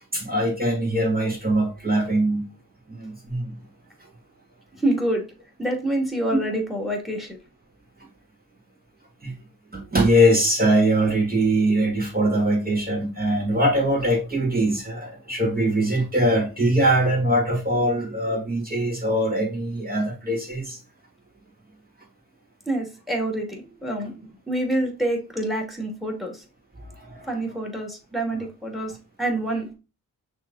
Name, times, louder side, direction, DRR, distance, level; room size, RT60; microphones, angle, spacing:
voice 1, 0.1-2.5 2.9-3.5 6.3-6.4 9.2-9.3 9.7-20.8 26.8-27.3, right 1 dB, 25° right, 3.2 m, -22 dB
voice 2, 4.8-5.2 5.6-7.4 22.7-26.4 27.3-29.7, right 1 dB, ahead, 2.7 m, -27 dB
6.0 x 3.7 x 4.2 m
cardioid pair, 50°, 37 cm